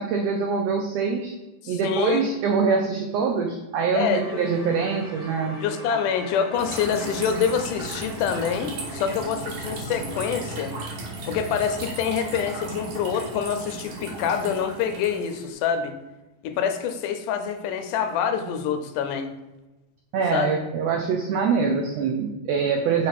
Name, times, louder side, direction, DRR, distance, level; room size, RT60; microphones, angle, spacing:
voice 1, 0.0-1.3 1.7-5.6 5.9-6.0 20.1-23.1, right 5 dB, 90° right, 3 dB, 1.4 m, -24 dB
voice 2, 1.6-2.3 3.9-4.4 5.5-10.8 11.3-15.9 16.4-19.3 20.3-20.6, left 7 dB, 85° left, 7 dB, 2.2 m, -26 dB
sound 1, 4.1-11.0, equal, 20° left, 1.8 m, -44 dB
sound 2, 6.5-15.5, right 2 dB, 70° right, 2.5 m, -35 dB
6.6 x 3.5 x 4.0 m, 1.1 s
omnidirectional pair, 3.6 m